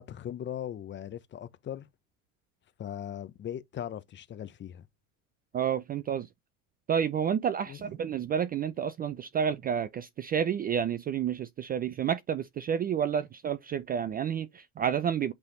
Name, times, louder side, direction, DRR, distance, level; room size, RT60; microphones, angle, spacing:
voice 1, 0.0-1.9 2.8-4.9 7.7-7.8, left 10 dB, 25° left, 0.7 m, -39 dB
voice 2, 5.5-6.3 6.9-15.3, right 8 dB, 25° right, 0.4 m, -30 dB
8.3 x 3.4 x 3.9 m
supercardioid pair, 110°, 42 cm